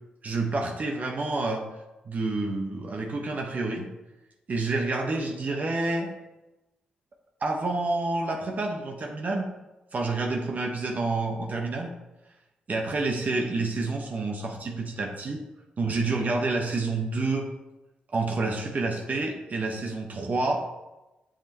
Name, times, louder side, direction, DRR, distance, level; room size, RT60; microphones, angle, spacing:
voice 1, 0.2-1.6 2.1-3.9 4.5-6.1 7.4-9.5 9.9-11.9 12.7-15.4 15.8-17.5 18.1-20.6, right 3 dB, 50° right, 1 dB, 1.2 m, -28 dB
7.7 x 7.4 x 3.0 m, 1.0 s
hypercardioid pair, 40°, 4 cm